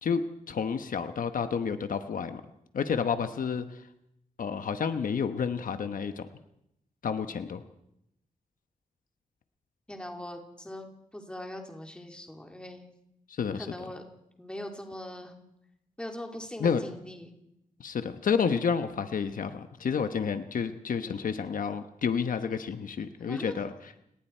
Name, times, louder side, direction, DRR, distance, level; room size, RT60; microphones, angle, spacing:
voice 1, 0.0-2.4 2.7-3.9 4.4-6.3 7.0-7.6 13.3-13.9 16.6-16.8 17.8-23.7, left 6 dB, 75° left, 9 dB, 1.1 m, -30 dB
voice 2, 9.9-10.9 11.1-12.9 13.6-14.0 14.4-15.3 16.0-17.3 23.2-23.6, left 1 dB, 5° left, 2 dB, 2.8 m, -41 dB
30.0 x 19.0 x 4.5 m, 0.80 s
wide cardioid pair, 135°, 14 cm